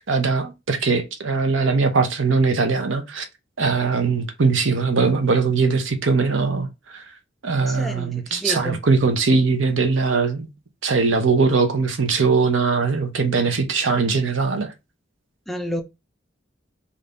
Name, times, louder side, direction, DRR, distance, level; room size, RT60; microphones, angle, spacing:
voice 1, 0.0-3.3 3.6-7.0 7.4-10.5 10.8-14.7, right 4 dB, 75° right, 0.8 m, -21 dB
voice 2, 7.7-8.8 15.5-15.8, equal, ahead, 0.5 m, -30 dB
3.4 x 2.7 x 3.8 m
head